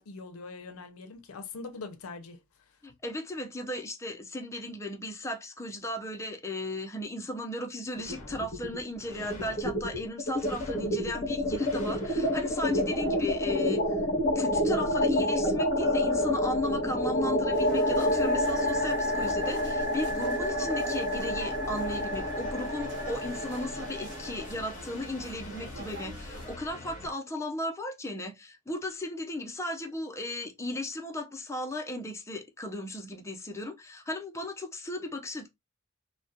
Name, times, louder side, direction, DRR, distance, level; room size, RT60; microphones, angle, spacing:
voice 1, 0.0-2.4, left 4 dB, 80° left, 0.5 m, -42 dB
voice 2, 2.8-14.0 14.3-35.5, left 1 dB, 15° left, 0.5 m, -36 dB
sound 1, 8.0-8.8 9.1-27.1, left 1 dB, 35° left, 0.8 m, -29 dB
sound 2, 17.5-26.6, right 2 dB, 55° right, 1.0 m, -46 dB
2.3 x 2.1 x 2.6 m
head